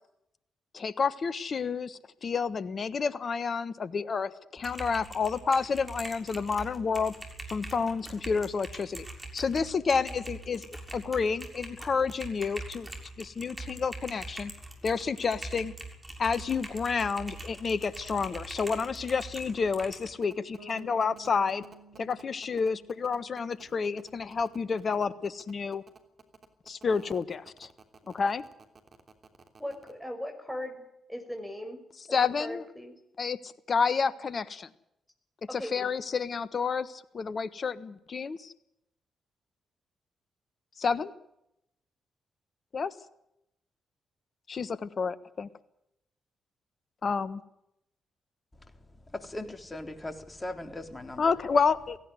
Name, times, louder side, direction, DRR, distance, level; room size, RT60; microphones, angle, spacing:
voice 1, 0.7-7.1 7.5-9.1 9.3-12.9 13.2-14.5 14.8-15.7 16.2-21.6 22.0-25.8 26.7-27.7 28.1-28.4 32.1-32.6 33.2-34.7 35.5-38.5 40.8-41.1 42.7-42.9 44.5-45.5 47.0-47.4 51.2-52.0, left 5 dB, 50° left, 1.4 m, -30 dB
Typing, 4.6-20.1, right 2 dB, 20° right, 6.7 m, -43 dB
sound 1, 20.2-29.9, right 5 dB, 50° right, 3.1 m, -53 dB
Bass guitar, 20.6-24.4, right 4 dB, 85° right, 3.8 m, -55 dB
voice 2, 29.6-30.8 31.1-31.8 32.4-32.9 35.5-35.9, left 1 dB, 5° left, 5.7 m, -38 dB
voice 3, 49.1-51.3, left 1 dB, 25° left, 3.6 m, -39 dB
17.5 x 16.0 x 9.8 m
hypercardioid pair, 40°, 0 cm